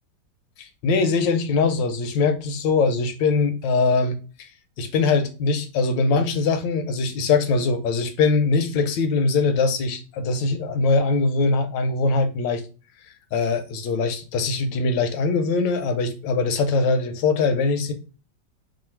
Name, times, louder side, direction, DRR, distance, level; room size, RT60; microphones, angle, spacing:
voice 1, 0.6-4.5 4.8-12.6 13.3-17.9, left 4 dB, 85° left, 1.3 m, -22 dB
3.1 x 2.4 x 4.4 m
omnidirectional pair, 2.0 m